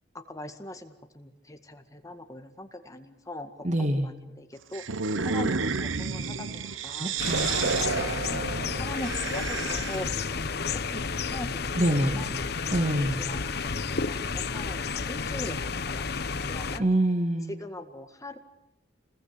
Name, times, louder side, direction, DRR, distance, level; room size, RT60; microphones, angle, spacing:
voice 1, 0.3-3.5 3.8-4.8 5.2-7.2 8.0-8.4 8.8-11.8 12.2-12.3 12.6-12.9 13.3-13.6 13.9-15.6 15.9-16.9 17.6-18.4, left 1 dB, 15° left, 6 dB, 1.9 m, -41 dB
voice 2, 3.6-4.1 6.9-7.6 11.8-12.3 12.7-13.3 16.8-17.5, right 1 dB, 40° right, 6 dB, 2.2 m, -26 dB
sound 1, 4.7-10.2, right 4 dB, 90° right, 1.0 m, -30 dB
sound 2, 7.2-16.8, left 5 dB, 55° left, 1.0 m, -31 dB
29.0 x 21.0 x 8.3 m, 0.99 s
head